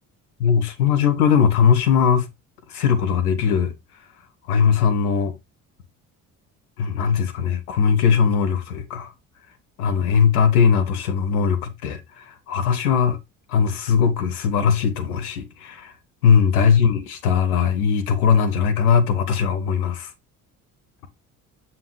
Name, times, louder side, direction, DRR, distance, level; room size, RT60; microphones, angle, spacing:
voice 1, 0.4-2.3 2.7-3.7 4.5-5.3 6.8-9.1 9.8-13.2 13.5-15.9 16.2-20.1, left 7 dB, 85° left, 1.1 m, -19 dB
7.1 x 5.6 x 3.3 m
hypercardioid pair, 50°, 43 cm